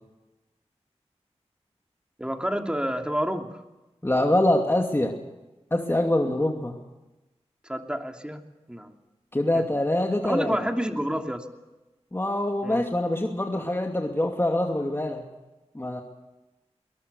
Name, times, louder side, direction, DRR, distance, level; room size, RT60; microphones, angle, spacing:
voice 1, 2.2-3.6 7.7-8.4 8.7-8.9 9.5-9.6 10.2-11.4 12.6-12.8, equal, 10° right, 4 dB, 2.8 m, -29 dB
voice 2, 4.0-5.1 5.7-6.8 9.3-10.6 12.1-15.2 15.7-16.0, left 1 dB, 20° left, 2 dB, 2.5 m, -24 dB
22.0 x 20.0 x 6.9 m, 1.1 s
cardioid pair, 40°, 11 cm